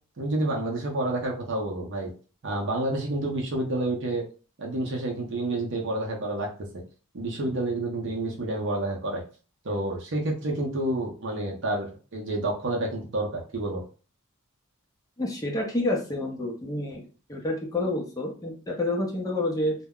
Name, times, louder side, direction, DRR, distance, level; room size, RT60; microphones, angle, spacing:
voice 1, 0.2-2.1 2.4-4.2 4.6-6.5 7.1-9.2 9.6-13.8, right 1 dB, 60° right, 0 dB, 0.6 m, -29 dB
voice 2, 15.2-17.0 17.3-19.7, left 1 dB, 15° left, 0 dB, 0.6 m, -28 dB
2.2 x 2.0 x 3.5 m, 0.37 s
head